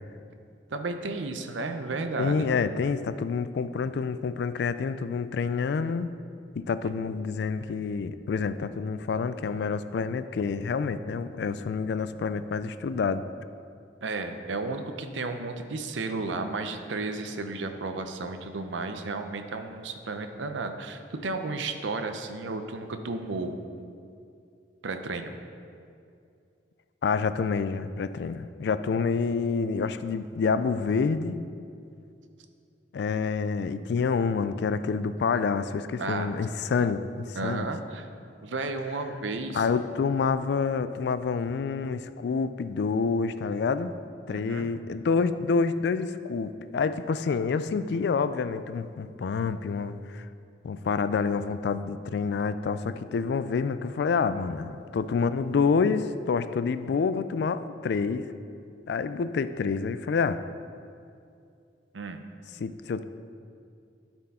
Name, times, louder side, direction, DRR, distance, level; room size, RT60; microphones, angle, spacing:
voice 1, 0.7-2.5 14.0-23.9 24.8-25.3 36.0-36.4 37.4-38.1 38.4-39.7 44.3-44.7 61.9-62.2, right 3 dB, 85° right, 7 dB, 0.6 m, -33 dB
voice 2, 2.2-6.1 6.6-13.3 27.0-31.4 32.9-37.7 39.5-44.0 44.3-50.3 50.6-58.3 58.9-60.4 62.6-63.0, left 5 dB, 60° left, 13 dB, 0.3 m, -28 dB
12.5 x 4.5 x 4.2 m, 2.4 s
head